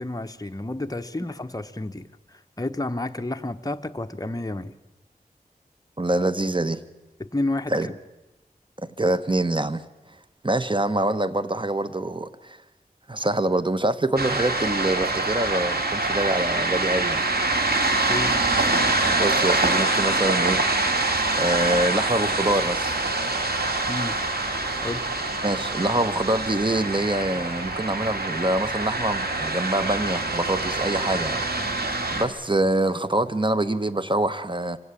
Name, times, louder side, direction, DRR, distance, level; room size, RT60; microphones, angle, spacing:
voice 1, 0.0-4.7 7.2-7.9 18.1-18.4 23.9-24.2 24.8-25.1, left 2 dB, 25° left, 7 dB, 1.0 m, -30 dB
voice 2, 6.0-6.8 7.7-7.9 9.0-9.9 10.4-12.6 13.1-17.3 19.0-20.6 21.4-23.0 25.4-31.4 32.1-34.8, right 1 dB, 30° right, 12 dB, 1.2 m, -25 dB
sound 1, 14.2-32.2, right 2 dB, 90° right, 2.4 m, -25 dB
25.5 x 16.5 x 8.4 m, 1.0 s
wide cardioid pair, 50°, 16 cm